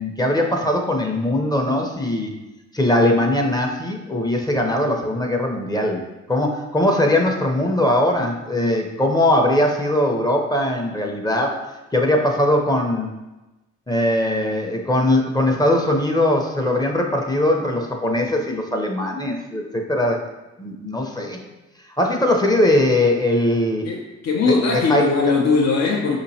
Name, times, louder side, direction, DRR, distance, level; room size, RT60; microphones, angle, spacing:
voice 1, 0.0-2.3 2.7-6.0 6.3-11.5 11.9-13.1 13.9-20.2 20.6-21.4 22.0-23.9 24.5-25.0, left 1 dB, 15° left, 1 dB, 0.6 m, -20 dB
voice 2, 23.8-26.2, left 4 dB, 55° left, -1 dB, 0.6 m, -20 dB
5.0 x 3.0 x 2.7 m, 1.0 s
cardioid pair, 75°, 30 cm